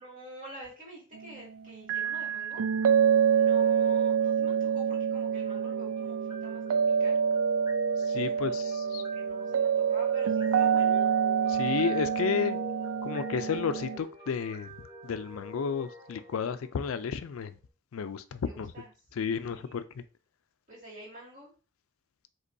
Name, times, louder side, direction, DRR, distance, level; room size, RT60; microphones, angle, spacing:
voice 1, 0.0-2.6 3.3-7.2 8.2-8.6 8.9-11.1 18.4-18.9 19.4-19.8 20.7-21.5, right 1 dB, 35° right, 2.2 m, -47 dB
sound 1, 1.9-14.0, right 7 dB, 80° right, 0.3 m, -27 dB
sound 2, 5.1-17.2, left 1 dB, 20° right, 1.9 m, -46 dB
voice 2, 8.1-9.0 11.5-12.6 13.0-14.7 15.0-17.5 17.9-18.7 19.2-20.0, left 6 dB, 80° left, 0.4 m, -32 dB
5.2 x 3.7 x 2.6 m
head